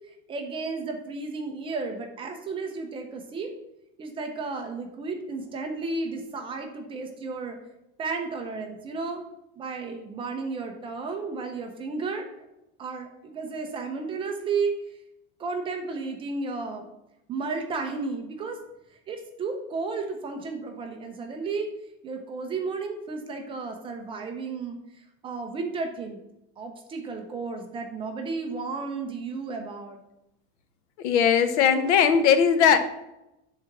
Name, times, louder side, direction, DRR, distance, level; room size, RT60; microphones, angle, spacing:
voice 1, 0.3-3.5 4.0-7.6 8.0-9.2 9.6-12.3 12.8-14.8 15.4-16.9 17.3-18.6 19.1-21.7 22.0-26.2 26.6-30.0, right 4 dB, 15° right, 4 dB, 0.4 m, -33 dB
voice 2, 31.0-32.8, left 7 dB, 85° left, 10 dB, 0.9 m, -19 dB
7.5 x 3.8 x 5.7 m, 0.89 s
supercardioid pair, 170°, 34 cm